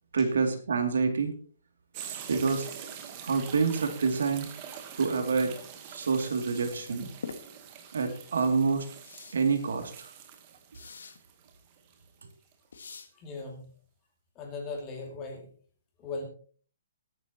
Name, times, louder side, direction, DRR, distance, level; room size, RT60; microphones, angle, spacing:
voice 1, 0.1-1.3 2.3-2.7 3.0-4.5 5.0-5.6 5.9-7.1 7.9-8.8 9.3-10.1, right 5 dB, 75° right, 5 dB, 2.6 m, -27 dB
sound 1, 1.9-12.5 13.0-13.1, right 8 dB, 20° right, 1.3 m, -45 dB
sound 2, 7.2-7.4 9.0-9.4 10.7-11.2 12.7-13.1, left 5 dB, 75° left, 2.0 m, -42 dB
voice 2, 13.1-13.7 14.3-15.5 16.0-16.2, left 3 dB, 15° left, 1 dB, 2.5 m, -38 dB
21.0 x 9.6 x 3.0 m, 0.43 s
hypercardioid pair, 180°, 0 cm